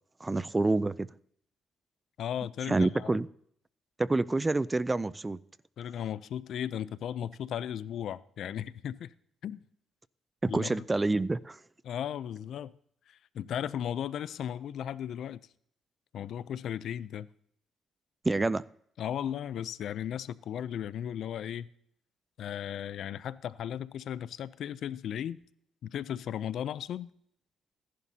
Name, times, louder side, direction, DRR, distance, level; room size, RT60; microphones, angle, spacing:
voice 1, 0.2-1.1 2.7-3.3 4.0-5.4 10.4-11.6 18.2-18.6, right 2 dB, 20° right, 0.3 m, -27 dB
voice 2, 2.2-3.2 5.8-9.1 9.4-9.6 10.5-10.7 11.8-12.7 13.1-15.5 16.1-17.3 19.0-21.7 22.4-25.4 25.8-27.1, left 9 dB, 70° left, 0.4 m, -36 dB
16.0 x 11.0 x 2.8 m
cardioid pair, 90°, 0 cm